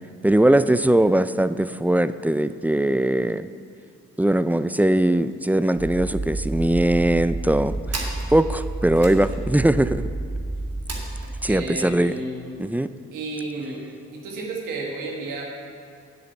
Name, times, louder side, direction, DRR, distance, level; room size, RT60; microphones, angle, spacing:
voice 1, 0.2-3.5 4.2-10.1 11.4-12.1 12.6-12.9, right 1 dB, 5° right, 13 dB, 0.3 m, -20 dB
sound 1, 5.3-5.4 5.7-5.8 6.0-6.7 7.3-11.3, right 3 dB, 50° right, 2.1 m, -38 dB
sound 2, 5.8-11.6, right 2 dB, 25° right, 1.5 m, -30 dB
voice 2, 11.4-12.5 13.1-13.9 14.1-15.4, right 2 dB, 80° right, -1 dB, 1.8 m, -32 dB
7.6 x 7.4 x 7.0 m, 2.3 s
hypercardioid pair, 45°, 33 cm